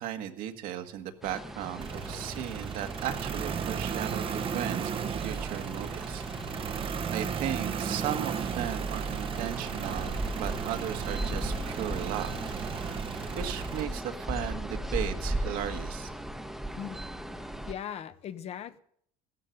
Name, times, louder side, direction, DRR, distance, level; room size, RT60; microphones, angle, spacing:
voice 1, 0.0-12.3 12.9-13.0 13.3-16.1, right 10 dB, 70° right, 1.7 m, -36 dB
sound 1, 0.8-8.4, left 5 dB, 65° left, 3.9 m, -55 dB
sound 2, 1.2-17.7, right 1 dB, ahead, 1.0 m, -37 dB
sound 3, 1.8-13.8, right 8 dB, 35° right, 0.9 m, -35 dB
voice 2, 17.3-18.8, left 9 dB, 45° left, 0.9 m, -40 dB
16.0 x 12.5 x 5.3 m
cardioid pair, 120°, 15 cm